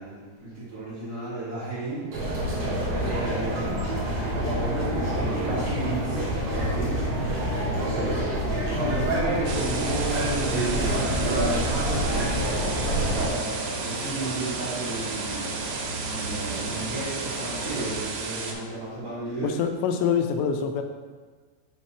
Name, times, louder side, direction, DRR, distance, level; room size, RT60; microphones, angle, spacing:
voice 1, 0.0-2.1 2.9-4.0 4.3-6.3 6.5-7.3 7.9-11.5 12.2-15.6 16.1-19.5, right 2 dB, 45° right, -10 dB, 1.8 m, -34 dB
sound 1, 2.1-13.3, right 1 dB, 60° right, 3.0 m, -26 dB
sound 2, 9.5-18.5, right 4 dB, 85° right, 3.2 m, -34 dB
sound 3, 10.4-18.0, right 1 dB, 60° left, 1.6 m, -36 dB
voice 2, 19.4-20.8, left 7 dB, 85° left, 6 dB, 2.7 m, -25 dB
7.6 x 3.5 x 4.2 m, 1.5 s
omnidirectional pair, 5.3 m